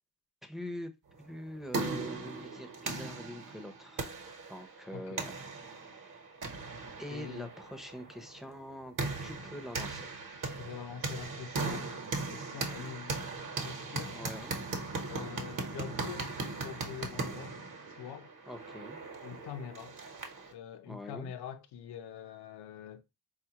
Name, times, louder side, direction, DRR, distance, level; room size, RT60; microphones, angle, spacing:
voice 1, 0.4-0.9 1.2-5.3 7.0-9.0 9.2-10.1 14.1-14.6 18.5-19.0 20.9-21.3, equal, ahead, 0.6 m, -44 dB
sound 1, 1.3-20.5, right 3 dB, 50° right, 1.0 m, -39 dB
voice 2, 4.9-5.3 7.1-7.5 10.6-13.3 13.6-14.2 15.1-16.3 16.6-17.6 17.9-18.3 19.2-20.0 20.5-23.0, left 8 dB, 70° left, 0.7 m, -45 dB
3.9 x 2.4 x 2.8 m
cardioid pair, 95°, 42 cm